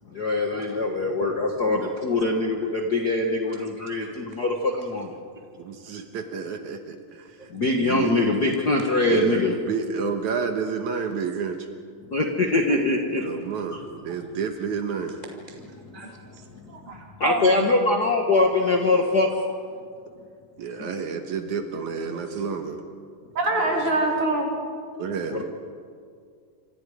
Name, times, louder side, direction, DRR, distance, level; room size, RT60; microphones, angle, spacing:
voice 1, 0.1-5.2 7.5-9.6 12.1-13.2 13.7-13.8 17.2-19.3 20.8-20.9 23.6-23.9 25.3-25.4, left 2 dB, 45° left, 1 dB, 1.4 m, -23 dB
voice 2, 5.6-7.4 7.7-8.1 9.1-11.6 13.2-15.2 20.6-22.8 25.0-25.4, right 5 dB, 65° right, 5 dB, 2.5 m, -30 dB
voice 3, 15.1-16.5 19.4-19.5 22.1-22.5 23.7-23.8 25.3-25.4, right 1 dB, 15° left, 0 dB, 1.6 m, -46 dB
voice 4, 16.7-17.8 23.4-24.5, right 2 dB, 40° right, 0 dB, 4.0 m, -25 dB
27.5 x 26.0 x 5.0 m, 2.1 s
omnidirectional pair, 3.8 m